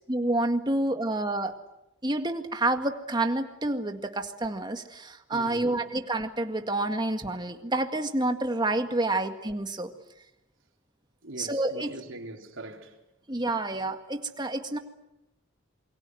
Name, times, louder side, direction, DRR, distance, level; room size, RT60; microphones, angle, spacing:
voice 1, 0.1-1.5 2.0-9.9 11.4-11.9 13.3-14.8, right 2 dB, 20° right, 1.9 m, -28 dB
voice 2, 5.3-5.8 11.2-13.0, right 1 dB, 70° right, 4.0 m, -42 dB
28.0 x 23.5 x 7.9 m
head